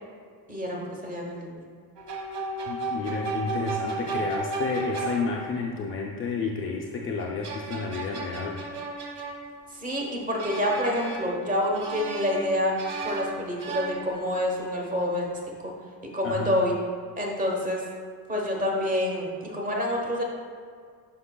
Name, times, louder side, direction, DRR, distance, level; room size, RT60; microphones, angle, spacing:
voice 1, 0.5-1.6 9.7-12.7 13.0-15.3 15.6-15.7 16.1-16.8 17.2-17.8 18.3-20.2, left 1 dB, 20° right, -1 dB, 1.0 m, -27 dB
sound 1, 2.0-5.6 7.2-9.9 10.4-11.5 11.7-14.4, right 3 dB, 80° right, 1.4 m, -34 dB
voice 2, 2.7-8.6 16.2-16.6, left 4 dB, 35° left, -1 dB, 0.4 m, -31 dB
9.7 x 6.0 x 2.2 m, 2.1 s
cardioid pair, 175°, 39 cm